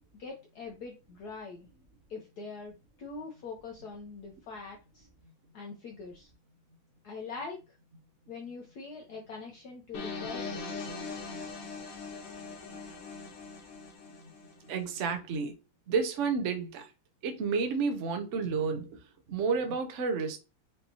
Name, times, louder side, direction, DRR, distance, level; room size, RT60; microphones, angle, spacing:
voice 1, 0.2-1.7 2.1-5.1 5.5-6.3 7.0-7.6 8.3-10.7, left 4 dB, 65° left, 1.1 m, -43 dB
sound 1, 9.9-14.9, left 4 dB, 85° left, 1.9 m, -41 dB
voice 2, 14.6-15.6 15.9-16.9 17.2-19.0 19.3-20.4, right 5 dB, 75° right, 0.6 m, -30 dB
5.1 x 2.9 x 2.7 m
omnidirectional pair, 2.2 m